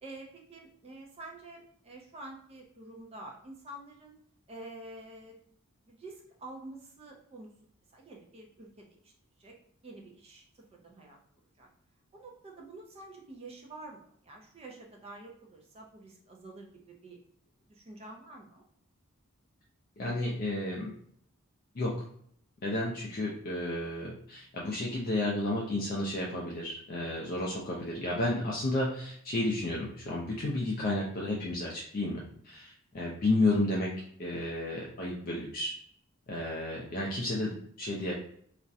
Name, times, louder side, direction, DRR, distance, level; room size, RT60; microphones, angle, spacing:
voice 1, 0.0-4.2 4.5-5.4 5.9-7.5 7.9-9.1 9.4-9.5 9.8-10.4 10.7-11.2 11.6-11.7 12.1-17.2 17.7-18.6, right 2 dB, 30° right, 0 dB, 0.4 m, -48 dB
voice 2, 20.0-20.9 21.7-22.0 22.6-33.9 34.2-35.7 36.3-38.1, left 2 dB, 45° left, -4 dB, 0.4 m, -32 dB
2.4 x 2.0 x 2.6 m, 0.64 s
head